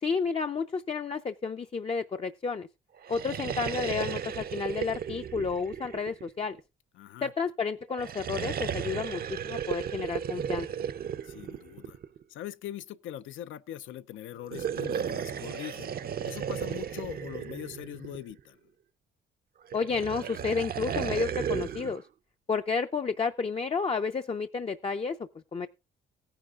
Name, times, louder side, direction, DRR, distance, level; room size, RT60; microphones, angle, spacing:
voice 1, 0.0-2.7 3.1-6.6 7.2-10.7 19.7-22.0 22.5-25.7, left 5 dB, 30° left, 0.5 m, -31 dB
sound 1, 3.0-6.6 7.9-12.2 14.4-18.4 19.7-22.0, right 8 dB, 50° right, 0.6 m, -35 dB
voice 2, 6.9-7.3 11.2-12.0 12.3-18.6, left 12 dB, 80° left, 0.6 m, -42 dB
16.5 x 10.0 x 2.4 m
cardioid pair, 90°, 20 cm